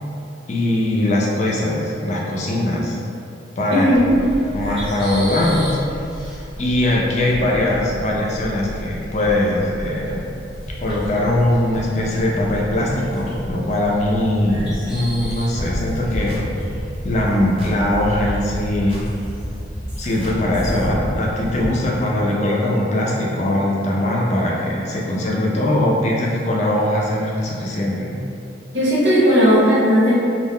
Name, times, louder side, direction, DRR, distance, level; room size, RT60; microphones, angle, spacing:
voice 1, 0.5-3.0 3.6-3.9 4.5-5.8 6.6-10.3 10.8-16.4 17.0-19.0 20.0-28.2, left 1 dB, 35° left, -4 dB, 0.4 m, -21 dB
voice 2, 3.7-4.1 28.7-30.2, equal, 75° right, -8 dB, 0.9 m, -15 dB
sound 1, 3.9-21.7, equal, ahead, 0.8 m, -32 dB
sound 2, 15.6-20.9, equal, 30° right, 0.5 m, -32 dB
2.3 x 2.1 x 3.4 m, 2.6 s
head